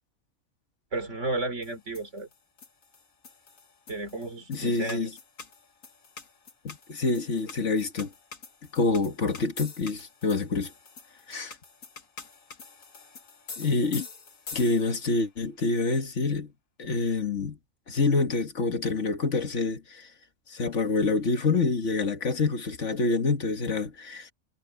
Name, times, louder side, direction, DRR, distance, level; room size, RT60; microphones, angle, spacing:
voice 1, 0.9-2.3 3.9-5.1, right 2 dB, 65° right, 3.7 m, -33 dB
sound 1, 1.6-15.1, left 4 dB, 90° left, 2.3 m, -46 dB
voice 2, 4.5-5.1 6.6-8.1 8.7-10.7 11.3-11.6 13.6-14.1 14.5-16.5 16.8-17.6 17.9-20.1 20.5-24.3, left 3 dB, 65° left, 1.8 m, -27 dB
omnidirectional pair, 1.4 m